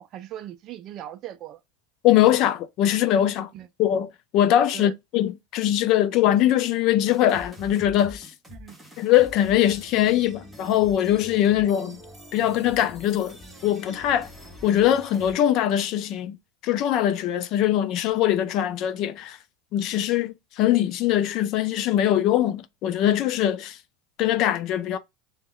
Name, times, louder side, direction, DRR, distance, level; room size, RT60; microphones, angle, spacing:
voice 1, 0.0-1.6 3.5-3.7 4.7-4.9 8.5-8.7, right 11 dB, 35° right, 0.3 m, -39 dB
voice 2, 2.0-3.5 3.8-8.3 9.0-12.0 12.3-13.4 13.6-14.3 14.6-16.4 16.6-19.4 19.7-23.8 24.2-25.0, left 11 dB, 45° left, 0.4 m, -22 dB
sound 1, 7.0-15.3, left 1 dB, 5° right, 0.8 m, -45 dB
2.2 x 2.0 x 3.6 m
supercardioid pair, 150°, 0 cm